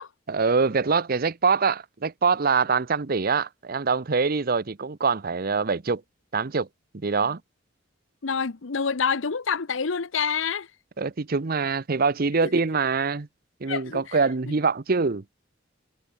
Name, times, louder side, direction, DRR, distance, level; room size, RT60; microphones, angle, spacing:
voice 1, 0.3-6.0 6.3-6.7 6.9-7.4 11.0-13.3 13.6-15.2, right 4 dB, 50° right, 0.8 m, -24 dB
voice 2, 8.2-10.7 12.4-12.5 13.7-14.2, left 6 dB, 80° left, 0.8 m, -27 dB
head